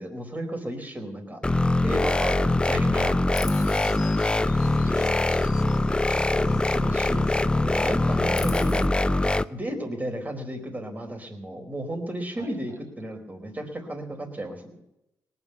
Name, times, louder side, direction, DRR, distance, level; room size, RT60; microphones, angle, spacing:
voice 1, 0.0-1.4 1.8-3.2 5.9-8.7 9.5-14.8, right 1 dB, 25° right, 4 dB, 4.3 m, -34 dB
sound 1, 1.4-9.4, left 2 dB, 15° left, 0.7 m, -23 dB
Chirp tweet, 3.3-7.3 7.6-8.9, left 8 dB, 65° left, 1.1 m, -45 dB
voice 2, 3.6-4.2 4.7-5.3 8.3-8.9 12.4-12.8, equal, 45° right, 5 dB, 4.1 m, -43 dB
19.0 x 9.8 x 7.0 m, 0.86 s
supercardioid pair, 65°, 7 cm